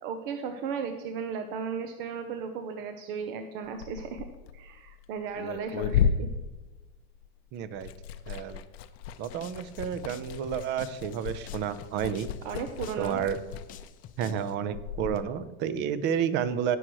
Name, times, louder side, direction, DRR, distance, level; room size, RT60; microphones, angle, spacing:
voice 1, 0.0-4.3 4.5-6.3 12.4-13.2, right 6 dB, 60° right, 7 dB, 0.9 m, -35 dB
Liquid, 3.7-7.4 7.6-15.2, left 7 dB, 85° left, 0.8 m, -34 dB
voice 2, 7.5-7.9 8.3-8.6 9.2-12.3 13.0-13.4 14.2-16.8, right 8 dB, 35° right, 14 dB, 0.7 m, -30 dB
sound 1, 9.1-14.5, left 11 dB, 30° left, 0.5 m, -50 dB
17.5 x 6.3 x 3.1 m, 1.1 s
supercardioid pair, 140°, 30 cm